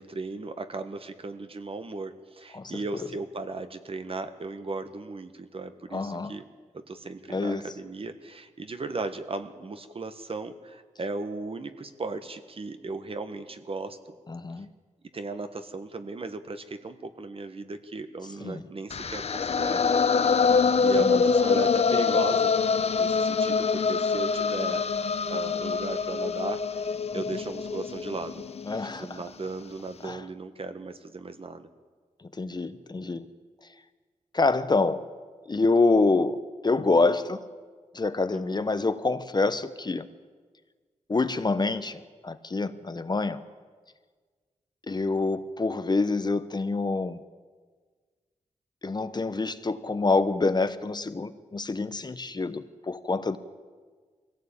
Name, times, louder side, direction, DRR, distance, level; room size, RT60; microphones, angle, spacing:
voice 1, 0.0-6.4 6.7-14.2 15.1-19.9 20.1-22.5 23.0-24.8 25.3-28.4 28.7-31.7 38.3-38.6, right 3 dB, 45° right, 9 dB, 1.5 m, -36 dB
voice 2, 5.9-6.3 7.3-7.6 14.3-14.7 18.4-18.6 21.0-21.2 27.1-27.2 28.7-29.2 30.0-30.2 32.4-33.2 34.3-35.0 35.5-36.4 36.6-37.4 37.9-40.1 41.1-43.4 44.9-47.2 48.8-53.4, left 3 dB, 35° left, 11 dB, 1.0 m, -26 dB
sound 1, 18.9-29.0, left 5 dB, 55° left, 0.7 m, -25 dB
22.5 x 16.5 x 8.8 m, 1.5 s
wide cardioid pair, 90°, 13 cm